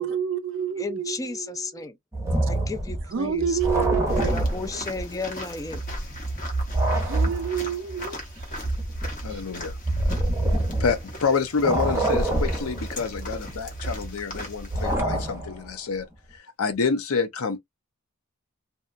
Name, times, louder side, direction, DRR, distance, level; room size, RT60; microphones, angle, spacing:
voice 1, 0.0-1.9 3.1-4.3 7.0-8.6 9.3-9.4, right 7 dB, 60° right, 0.4 m, -29 dB
voice 2, 0.8-2.0 2.5-5.8, left 3 dB, 15° left, 0.4 m, -34 dB
sound 1, 2.1-5.2 5.5-11.3 11.6-15.7, right 1 dB, 15° right, 0.7 m, -27 dB
sound 2, 4.1-15.0, left 1 dB, 40° left, 1.0 m, -40 dB
voice 3, 9.2-9.7 10.8-16.1 16.3-17.6, left 5 dB, 80° left, 0.6 m, -27 dB
2.7 x 2.2 x 2.5 m
head